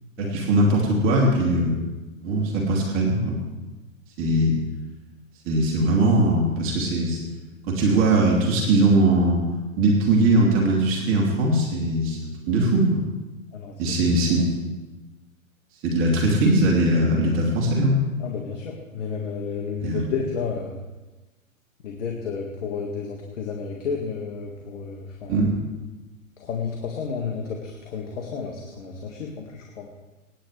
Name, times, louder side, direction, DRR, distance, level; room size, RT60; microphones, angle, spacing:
voice 1, 0.2-1.8 2.2-3.4 4.2-4.6 5.4-7.2 7.7-9.4 9.8-13.0 13.8-14.5 15.8-18.0 19.8-20.1 25.3-25.5, right 1 dB, 30° right, -2 dB, 3.0 m, -20 dB
voice 2, 13.5-14.0 18.2-20.8 21.8-25.5 26.4-29.9, left 5 dB, 60° left, 1 dB, 2.0 m, -32 dB
25.0 x 10.0 x 3.3 m, 1.1 s
figure-of-eight pair, 110°, 42 cm